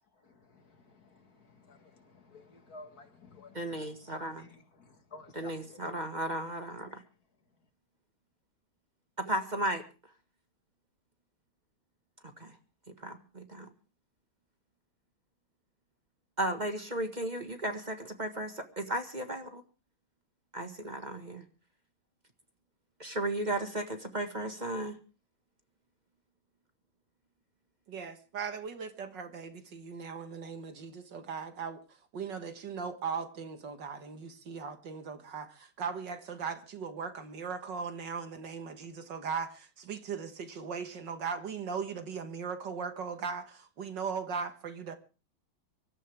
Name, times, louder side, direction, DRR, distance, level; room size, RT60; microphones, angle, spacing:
voice 1, 0.1-6.1 6.9-7.1, left 3 dB, 50° left, 2.3 m, -54 dB
voice 2, 3.5-4.4 5.4-7.0 9.2-9.8 12.4-12.5 13.0-13.7 16.4-19.6 20.5-21.4 23.0-25.0, right 1 dB, 25° right, 1.7 m, -35 dB
voice 3, 27.9-44.9, right 6 dB, 65° right, 2.1 m, -38 dB
25.0 x 13.0 x 3.6 m
omnidirectional pair, 2.2 m